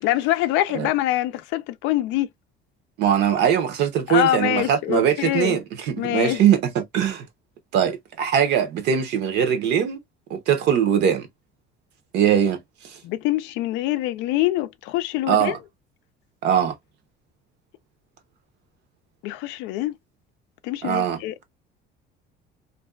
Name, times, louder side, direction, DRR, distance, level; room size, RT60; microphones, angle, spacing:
voice 1, 0.0-2.3 4.1-5.6 6.0-6.4 13.0-15.6 19.2-20.0 20.6-21.4, left 14 dB, 75° left, 0.4 m, -24 dB
voice 2, 3.0-7.2 7.7-10.0 10.3-11.3 12.1-12.6 15.3-15.6 16.4-16.8 20.8-21.2, right 9 dB, 60° right, 0.8 m, -21 dB
2.5 x 2.2 x 2.2 m
cardioid pair, 155°, 19 cm